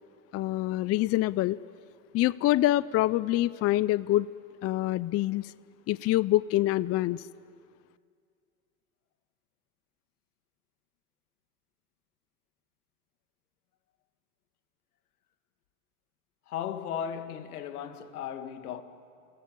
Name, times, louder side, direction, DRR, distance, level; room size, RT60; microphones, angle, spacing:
voice 1, 0.3-1.6 2.1-4.3 4.6-5.5 5.9-7.2, left 15 dB, 35° left, 0.5 m, -25 dB
voice 2, 16.5-18.8, left 8 dB, 90° left, 2.0 m, -36 dB
28.5 x 19.5 x 7.5 m
hypercardioid pair, 105°, 44 cm